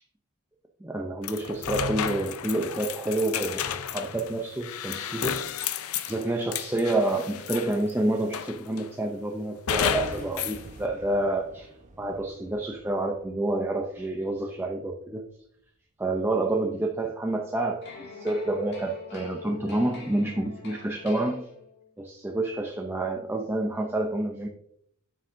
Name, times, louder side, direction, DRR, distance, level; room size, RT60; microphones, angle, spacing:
voice 1, 0.8-5.4 6.0-11.7 12.0-15.2 16.0-21.5 22.0-24.5, right 2 dB, 10° right, 1 dB, 0.5 m, -28 dB
sound 1, 1.2-7.9 8.3-8.9 9.7-10.6, left 8 dB, 70° left, 0.5 m, -32 dB
sound 2, 9.8-14.8 15.0-15.2, right 1 dB, 35° right, 0.8 m, -46 dB
sound 3, 17.8-21.9, left 5 dB, 50° left, 2.2 m, -44 dB
7.4 x 6.6 x 2.6 m, 0.70 s
head